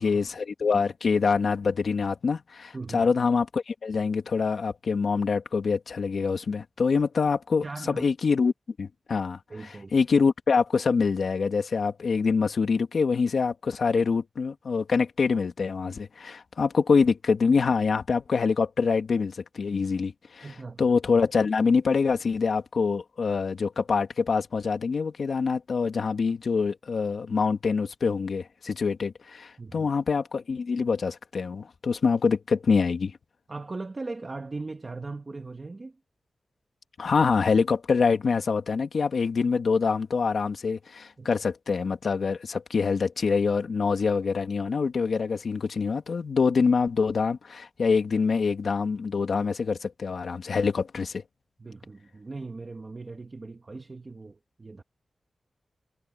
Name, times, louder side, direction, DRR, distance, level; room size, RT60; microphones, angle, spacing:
voice 1, 0.0-8.5 8.8-20.5 20.8-33.1 37.0-51.2, left 5 dB, 70° left, 2.4 m, -25 dB
voice 2, 2.7-3.1 7.6-8.0 9.5-9.9 20.4-20.9 29.6-29.9 33.5-35.9 41.2-41.3 51.6-54.8, right 3 dB, 30° right, 1.5 m, -39 dB
wide cardioid pair, 145°, 0 cm